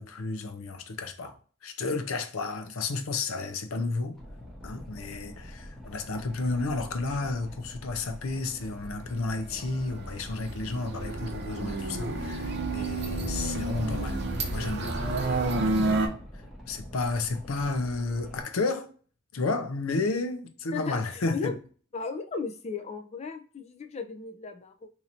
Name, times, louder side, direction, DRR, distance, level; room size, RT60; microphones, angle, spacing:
voice 1, 0.0-1.4 1.6-4.2 4.6-14.2 14.5-15.0 15.7-15.9 16.7-18.9 19.3-21.5, left 3 dB, 75° left, 0.6 m, -32 dB
Boat Water vehicle, 4.1-18.4, equal, ahead, 0.8 m, -45 dB
sound 1, 9.6-16.1, right 2 dB, 50° right, 0.6 m, -30 dB
voice 2, 20.7-21.6 21.9-24.9, left 4 dB, 30° left, 0.4 m, -36 dB
2.8 x 2.6 x 4.1 m
head